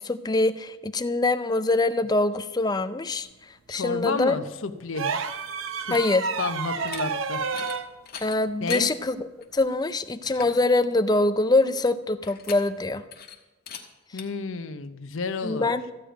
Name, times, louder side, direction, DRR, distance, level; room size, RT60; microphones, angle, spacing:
voice 1, 0.0-3.3 3.7-4.3 5.9-6.2 8.2-13.0 15.4-15.8, left 2 dB, 20° left, 11 dB, 0.5 m, -24 dB
voice 2, 3.7-5.2 5.8-6.0 6.4-7.4 8.6-8.9 14.1-15.8, left 4 dB, 75° left, 10 dB, 0.8 m, -31 dB
sound 1, 4.9-7.9 9.6-9.7, right 5 dB, 80° right, 0.7 m, -30 dB
sound 2, 6.7-7.0 7.5-7.8 8.1-8.9 9.4-9.5 9.9-10.0 10.2-10.6 12.2-12.9 13.1-13.4 13.7-13.8 14.2-14.3, left 8 dB, 50° left, 1.3 m, -40 dB
14.0 x 5.1 x 9.0 m, 1.1 s
head